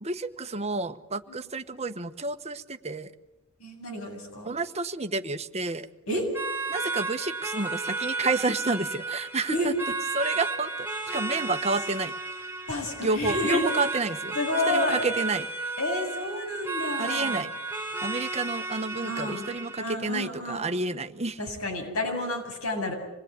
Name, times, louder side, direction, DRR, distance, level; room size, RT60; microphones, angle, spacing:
voice 1, 0.0-3.1 4.4-5.9 6.7-9.7 10.1-12.1 13.0-14.3 14.7-15.5 17.0-17.5 18.0-21.4, right 3 dB, 30° right, 9 dB, 1.2 m, -30 dB
voice 2, 3.6-4.5 6.1-6.3 9.5-9.7 12.7-13.7 14.3-15.0 15.8-17.4 19.0-19.5 19.8-20.7 21.4-22.9, left 2 dB, 80° left, 2 dB, 7.8 m, -30 dB
sound 1, 6.3-19.9, right 3 dB, 10° right, 4.5 m, -33 dB
27.0 x 21.0 x 9.7 m, 1.0 s
head